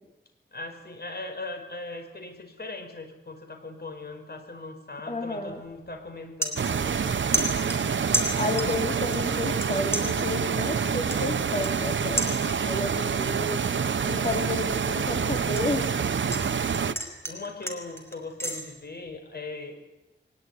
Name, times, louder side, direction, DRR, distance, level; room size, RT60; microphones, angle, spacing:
voice 1, 0.5-7.2 16.9-19.8, left 2 dB, 55° left, 6 dB, 5.3 m, -39 dB
voice 2, 5.1-5.6 8.4-12.3 12.6-13.6 14.0-15.9, left 2 dB, 40° left, 2 dB, 3.2 m, -31 dB
sound 1, 5.5-5.7 6.1-7.1 7.3-8.8 9.1-9.7 9.9-12.8 13.2-13.6 14.0-16.4 16.7-18.6, equal, 10° left, 5.4 m, -32 dB
sound 2, 6.6-16.9, right 6 dB, 70° right, 1.1 m, -27 dB
23.0 x 20.5 x 9.6 m, 0.99 s
wide cardioid pair, 75°, 20 cm